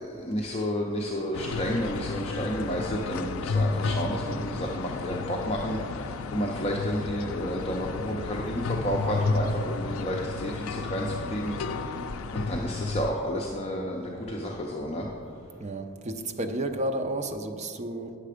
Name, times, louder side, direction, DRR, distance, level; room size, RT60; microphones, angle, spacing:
voice 1, 0.0-12.0 12.3-15.1, equal, 30° left, -2 dB, 0.6 m, -31 dB
sound 1, 1.3-13.1, left 3 dB, 70° left, 0.4 m, -32 dB
voice 2, 15.6-18.2, right 1 dB, 30° right, 5 dB, 0.5 m, -32 dB
9.3 x 6.7 x 5.0 m, 2.6 s
head